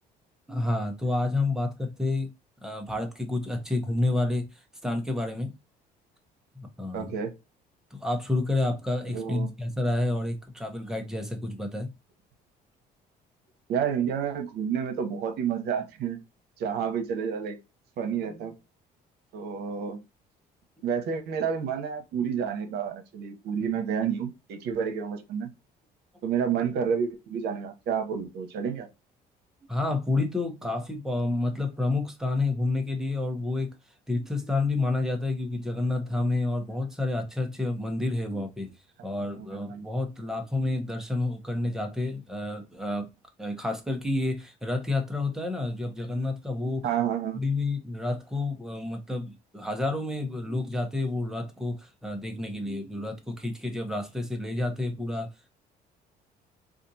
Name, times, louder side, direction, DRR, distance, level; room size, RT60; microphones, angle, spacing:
voice 1, 0.5-2.3 2.6-4.4 4.8-5.5 6.5-7.1 7.9-11.9 29.7-33.7 34.1-38.7 39.0-43.1 43.4-46.8 47.3-55.5, left 2 dB, 5° right, 0.9 m, -29 dB
voice 2, 6.9-7.3 9.1-9.5 13.7-16.2 16.6-17.6 18.0-18.5 19.3-20.0 20.8-25.5 26.2-28.9 39.3-39.8 46.8-47.4, right 7 dB, 75° right, 1.0 m, -30 dB
4.2 x 2.5 x 2.7 m
cardioid pair, 110°, 17 cm